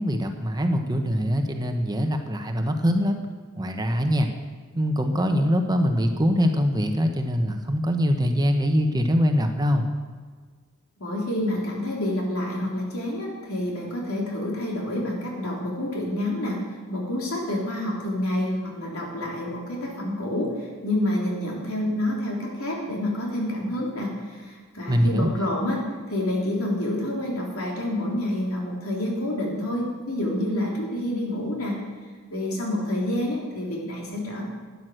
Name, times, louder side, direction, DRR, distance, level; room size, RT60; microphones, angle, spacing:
voice 1, 0.0-3.2 3.6-4.3 4.7-9.9 24.9-25.3, equal, 20° right, 5 dB, 1.0 m, -23 dB
voice 2, 11.0-31.7 32.3-34.4, left 1 dB, 75° left, -2 dB, 3.5 m, -28 dB
12.5 x 9.5 x 6.3 m, 1.5 s
head